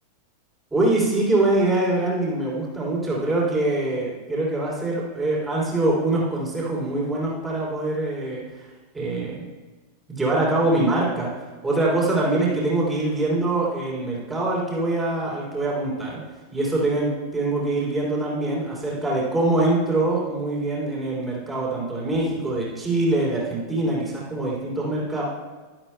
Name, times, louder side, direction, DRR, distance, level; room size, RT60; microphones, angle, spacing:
voice 1, 0.7-8.4 8.9-9.4 10.1-11.3 11.6-16.2 16.5-25.2, right 2 dB, 10° right, -4 dB, 3.1 m, -24 dB
13.5 x 12.0 x 2.2 m, 1.3 s
figure-of-eight pair, 90°, 0 cm